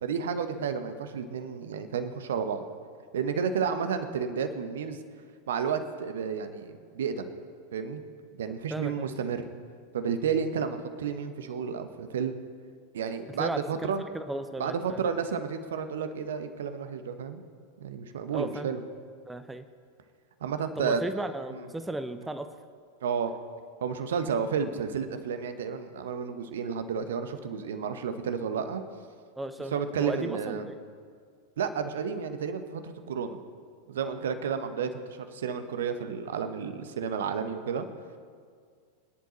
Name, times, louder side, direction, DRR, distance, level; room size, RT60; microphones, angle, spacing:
voice 1, 0.0-2.6 3.1-5.0 5.5-7.3 7.7-8.0 8.4-9.4 9.9-12.4 12.9-14.0 14.6-17.4 17.8-18.8 20.4-21.0 21.5-21.7 23.0-23.3 23.8-28.8 29.7-30.7 31.6-33.4 33.9-37.9, right 6 dB, 60° right, 9 dB, 1.0 m, -31 dB
voice 2, 8.7-9.1 13.3-15.1 18.3-18.7 19.3-19.6 20.8-22.5 29.4-29.7 30.0-30.8, right 1 dB, 5° right, 9 dB, 0.7 m, -35 dB
25.5 x 10.5 x 3.1 m, 2.1 s
figure-of-eight pair, 90°, 0 cm